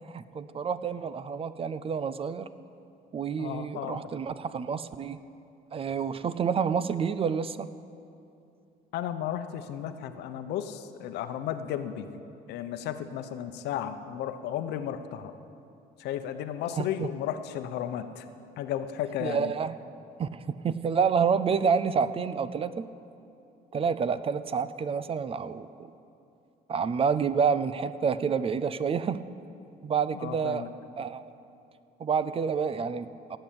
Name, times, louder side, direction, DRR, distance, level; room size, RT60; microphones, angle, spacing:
voice 1, 0.1-2.5 3.1-5.2 5.7-7.7 16.8-17.1 19.2-19.7 20.2-22.9 23.7-25.9 26.7-29.2 29.8-30.7 31.0-31.3 32.0-33.4, right 6 dB, 35° right, 14 dB, 0.5 m, -28 dB
voice 2, 3.4-4.0 8.9-12.1 12.5-15.4 16.0-18.3 18.6-19.5 30.1-30.7, left 10 dB, 80° left, 9 dB, 0.9 m, -34 dB
17.0 x 7.9 x 8.8 m, 2.7 s
cardioid pair, 110°, 17 cm